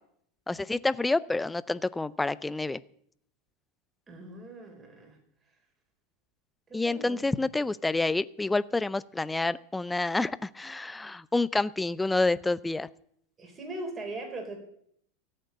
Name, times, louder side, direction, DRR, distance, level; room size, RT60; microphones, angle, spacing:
voice 1, 0.5-2.8 6.7-12.9, left 2 dB, 10° left, 17 dB, 0.4 m, -28 dB
voice 2, 4.1-5.2 6.7-7.2 13.4-14.6, right 2 dB, 25° right, 4 dB, 4.1 m, -40 dB
14.5 x 6.6 x 9.4 m, 0.69 s
supercardioid pair, 125°, 0 cm